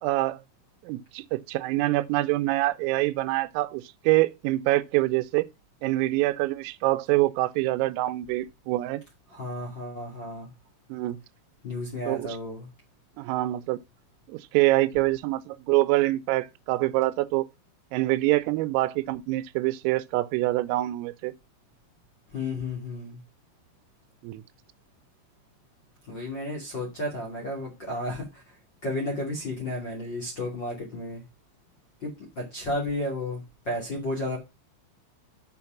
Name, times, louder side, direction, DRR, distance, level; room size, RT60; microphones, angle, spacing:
voice 1, 0.0-0.4 0.8-5.5 5.8-9.0 10.9-11.2 12.1-12.3 13.2-13.8 14.3-17.5 17.9-21.3 24.2-24.4, right 18 dB, 90° right, 3.3 m, -25 dB
voice 2, 9.3-10.5 11.6-12.7 22.3-23.2 26.0-31.2 32.0-34.4, left 1 dB, 35° left, 2.0 m, -33 dB
7.9 x 5.9 x 5.8 m
omnidirectional pair, 5.8 m